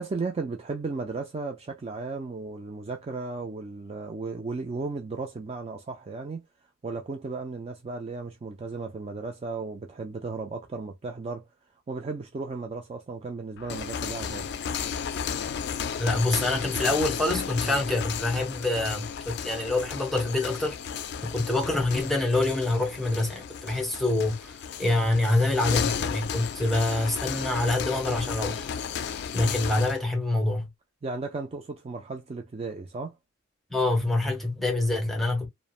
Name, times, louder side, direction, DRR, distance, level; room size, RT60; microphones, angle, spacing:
voice 1, 0.0-6.4 6.8-11.5 11.9-14.5 31.0-33.1, right 3 dB, 30° right, 0.3 m, -35 dB
sound 1, 13.6-30.0, left 7 dB, 55° left, 0.3 m, -33 dB
voice 2, 16.0-28.7 29.3-30.7 33.7-35.5, left 2 dB, ahead, 0.8 m, -26 dB
3.1 x 2.0 x 2.3 m
head